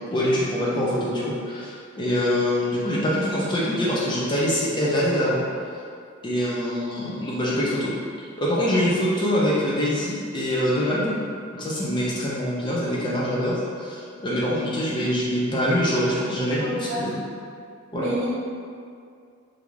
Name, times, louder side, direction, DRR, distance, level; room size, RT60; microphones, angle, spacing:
voice 1, 0.1-5.4 6.2-11.1 11.5-17.2 17.9-18.1, equal, 20° left, -6 dB, 0.4 m, -24 dB
voice 2, 16.5-17.0 17.9-18.3, equal, 60° right, -8 dB, 1.0 m, -29 dB
3.4 x 2.5 x 3.1 m, 2.3 s
head